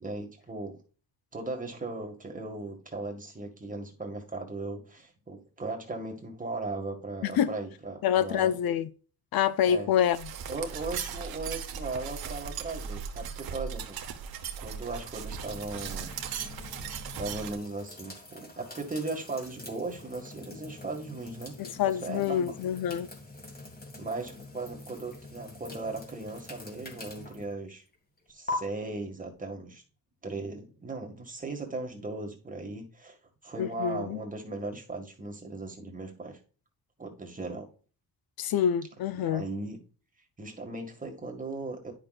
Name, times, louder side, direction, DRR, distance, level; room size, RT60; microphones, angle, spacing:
voice 1, 0.0-0.8 1.3-8.5 9.7-9.9 10.5-14.0 14.6-16.1 17.1-21.5 21.8-22.5 24.0-27.8 28.3-29.8 30.2-33.2 33.4-36.4 37.0-37.7 39.1-39.8 40.4-41.9, right 3 dB, 20° right, 1.8 m, -37 dB
voice 2, 8.0-8.9 9.3-10.3 21.6-23.1 33.6-34.2 38.4-39.4, left 9 dB, 75° left, 0.6 m, -26 dB
sound 1, 10.1-17.6, right 7 dB, 75° right, 1.2 m, -38 dB
sound 2, 15.4-28.5, left 2 dB, 25° left, 2.2 m, -45 dB
10.0 x 6.0 x 2.4 m
cardioid pair, 110°, 37 cm